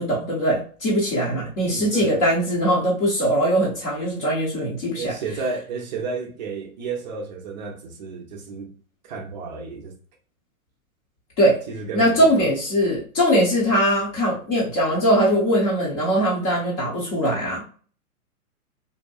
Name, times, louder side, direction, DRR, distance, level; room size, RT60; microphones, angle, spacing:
voice 1, 0.0-5.1 11.4-11.6 11.9-17.7, equal, 25° left, 0.8 m, -21 dB
voice 2, 1.7-2.2 5.0-8.7 9.0-9.9 11.7-12.5, right 4 dB, 30° right, 0.5 m, -32 dB
2.7 x 2.2 x 2.3 m
figure-of-eight pair, 120°, 44 cm